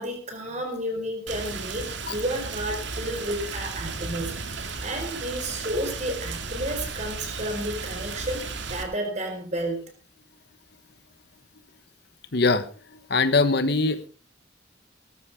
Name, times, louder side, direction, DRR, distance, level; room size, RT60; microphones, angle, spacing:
voice 1, 0.0-9.8, right 1 dB, 40° right, 5 dB, 4.7 m, -31 dB
Rain, 1.3-8.8, right 4 dB, 70° right, 2.3 m, -34 dB
voice 2, 12.3-12.7 13.1-14.1, left 3 dB, 60° left, 11 dB, 1.2 m, -22 dB
19.0 x 13.5 x 3.6 m, 0.36 s
head